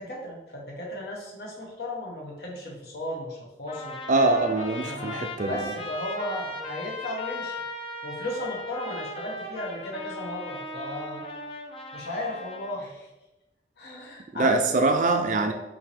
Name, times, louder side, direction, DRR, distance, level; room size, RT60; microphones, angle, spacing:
voice 1, 0.0-4.0 4.8-7.5 8.0-11.2 11.9-13.1 13.8-14.8 15.4-15.5, left 1 dB, 65° left, -2 dB, 1.2 m, -35 dB
Trumpet, 3.7-12.7, left 2 dB, 30° left, 0.4 m, -37 dB
voice 2, 4.1-5.6 14.3-15.5, right 2 dB, 45° right, 6 dB, 0.4 m, -23 dB
5.5 x 2.8 x 3.4 m, 0.98 s
head